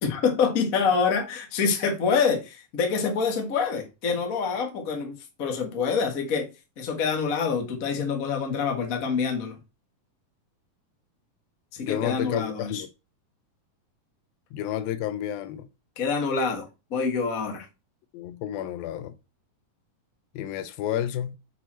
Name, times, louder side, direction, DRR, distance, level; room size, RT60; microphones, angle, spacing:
voice 1, 0.0-5.1 5.4-6.5 6.8-9.6 11.8-12.8 16.0-17.6, left 5 dB, 50° left, 1.0 m, -26 dB
voice 2, 11.8-12.9 14.5-15.7 18.1-19.2 20.4-21.4, left 11 dB, 80° left, 2.4 m, -31 dB
6.8 x 4.6 x 4.4 m
omnidirectional pair, 4.2 m